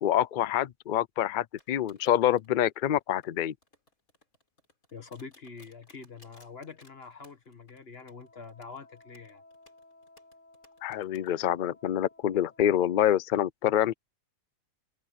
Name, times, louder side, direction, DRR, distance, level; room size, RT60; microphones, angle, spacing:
voice 1, 0.0-3.5 10.8-13.9, left 11 dB, 70° left, 0.4 m, -26 dB
sound 1, 1.6-11.3, left 2 dB, 85° left, 7.1 m, -61 dB
voice 2, 4.9-9.4, left 5 dB, 45° left, 1.9 m, -45 dB
Wind instrument woodwind instrument, 7.9-13.2, left 2 dB, 10° left, 4.0 m, -58 dB
omnidirectional pair, 1.4 m